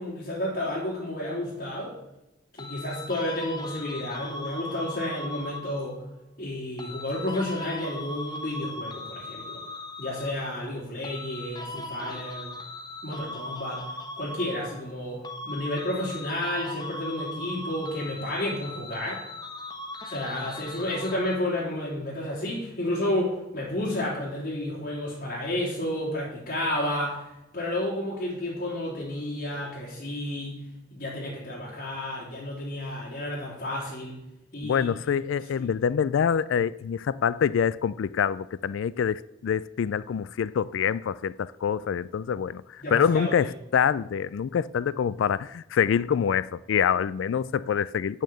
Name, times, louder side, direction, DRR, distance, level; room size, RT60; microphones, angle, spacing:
voice 1, 0.0-1.9 2.5-6.0 6.4-9.6 10.0-12.5 13.0-13.8 14.2-19.2 20.0-27.2 27.5-30.6 30.9-34.2 34.5-34.9 42.8-43.3, left 1 dB, 45° left, 3.7 m, -31 dB
sound 1, 2.6-5.9 6.8-10.6 11.0-15.0 15.2-21.6, left 2 dB, 20° left, 1.0 m, -39 dB
voice 2, 34.6-48.2, left 7 dB, 80° left, 0.3 m, -26 dB
8.6 x 6.5 x 7.7 m
head